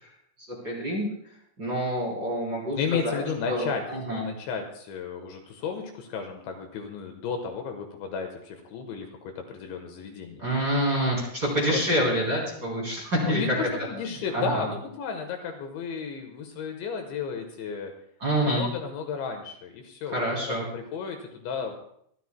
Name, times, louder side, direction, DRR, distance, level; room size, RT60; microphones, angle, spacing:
voice 1, 0.4-1.1 1.6-3.2 3.5-4.3 10.4-13.6 14.1-14.6 18.2-18.6 20.1-20.7, equal, 25° right, -3 dB, 3.4 m, -27 dB
voice 2, 2.8-3.8 4.1-9.1 9.4-10.4 11.7-11.8 13.3-17.9 18.4-21.8, left 6 dB, 75° left, 4 dB, 3.3 m, -33 dB
25.0 x 12.5 x 2.2 m, 0.69 s
omnidirectional pair, 5.7 m